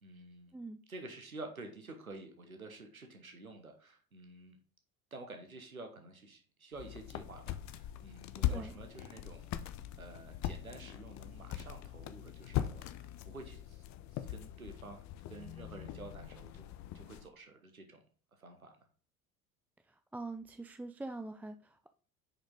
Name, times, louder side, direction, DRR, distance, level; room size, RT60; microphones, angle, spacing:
voice 1, 0.0-0.5 0.9-4.6 5.1-15.0 15.3-16.7 16.9-18.0 18.3-18.8, right 2 dB, 90° right, 5 dB, 1.3 m, -50 dB
sound 1, 6.7-17.3, left 12 dB, 45° left, 0.8 m, -41 dB
voice 2, 19.8-21.9, right 2 dB, 5° right, 8 dB, 0.4 m, -44 dB
9.7 x 5.2 x 3.8 m, 0.41 s
figure-of-eight pair, 65°, 41 cm